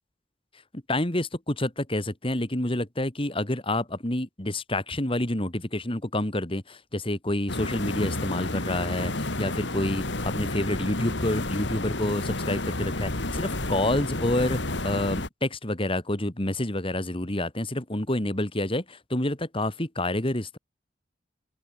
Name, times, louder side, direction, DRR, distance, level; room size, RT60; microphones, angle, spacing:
voice 1, 0.7-20.6, left 1 dB, 30° left, 2.8 m, -28 dB
sound 1, 7.5-15.3, left 2 dB, 80° left, 3.1 m, -30 dB
open air
head